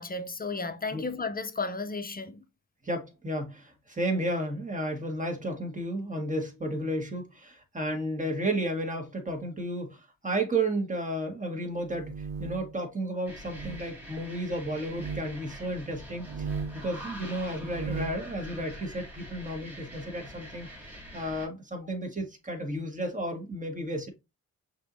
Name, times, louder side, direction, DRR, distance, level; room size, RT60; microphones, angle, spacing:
voice 1, 0.0-2.4, left 3 dB, 25° left, 0.7 m, -34 dB
voice 2, 2.8-20.7 21.1-24.1, right 1 dB, 20° right, 1.8 m, -33 dB
sound 1, 11.8-12.8 13.5-13.8 14.8-15.3 16.1-16.9 17.5-18.2, right 5 dB, 75° right, 0.6 m, -37 dB
sound 2, 13.3-21.5, equal, 5° right, 2.7 m, -45 dB
5.8 x 3.2 x 2.7 m
supercardioid pair, 55°, 34 cm